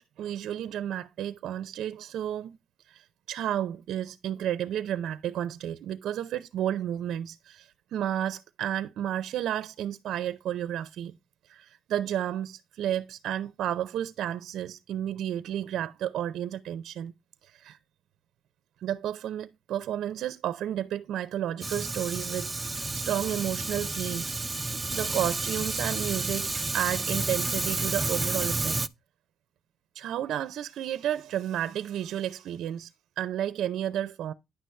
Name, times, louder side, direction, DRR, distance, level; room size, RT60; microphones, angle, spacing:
voice 1, 0.0-2.6 2.9-11.1 11.5-17.1 17.5-17.8 18.8-24.4 24.9-28.8 29.9-32.9 33.2-34.3, right 11 dB, 75° right, 0.6 m, -32 dB
Fire, 21.6-28.9, right 3 dB, 20° right, 0.5 m, -31 dB
9.9 x 6.2 x 3.2 m
cardioid pair, 90°, 0 cm